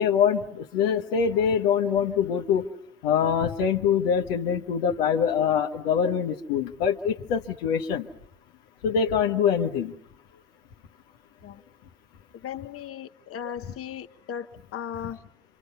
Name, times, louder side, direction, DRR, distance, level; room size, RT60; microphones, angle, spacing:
voice 1, 0.0-2.7 3.0-8.1 8.8-9.9, left 7 dB, 75° left, 5 dB, 1.2 m, -24 dB
voice 2, 12.3-14.5 14.7-15.2, left 9 dB, 50° left, 7 dB, 1.1 m, -36 dB
27.5 x 25.0 x 5.6 m, 0.74 s
hypercardioid pair, 50°, 30 cm